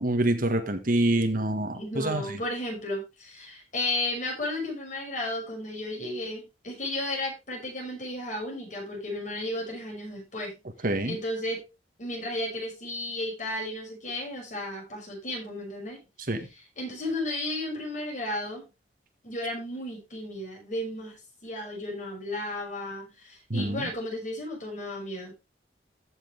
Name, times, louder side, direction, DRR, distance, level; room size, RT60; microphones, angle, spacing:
voice 1, 0.0-2.4 10.8-11.2 16.3-16.5 23.5-23.9, right 1 dB, 50° right, 1.6 m, -26 dB
voice 2, 1.7-10.6 11.0-11.6 12.0-16.0 16.8-18.6 19.2-21.2 21.4-25.3, left 1 dB, 45° left, 6.2 m, -33 dB
14.5 x 6.6 x 3.4 m
head